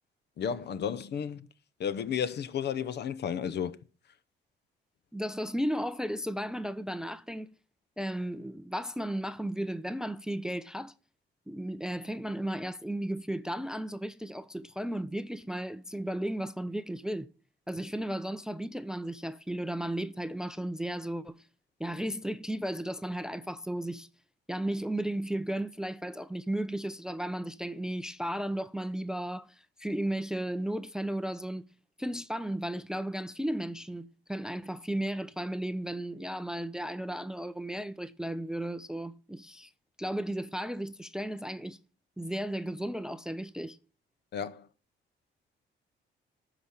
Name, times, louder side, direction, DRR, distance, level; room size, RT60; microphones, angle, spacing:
voice 1, 0.4-1.5 1.8-3.8 44.3-44.7, left 8 dB, 60° left, 0.7 m, -33 dB
voice 2, 5.1-7.5 8.0-10.9 11.5-17.3 17.7-21.4 21.8-24.1 24.5-31.7 32.0-39.7 40.0-41.8 42.2-43.8, right 1 dB, 5° right, 0.4 m, -34 dB
12.0 x 5.0 x 5.8 m
cardioid pair, 90°, 20 cm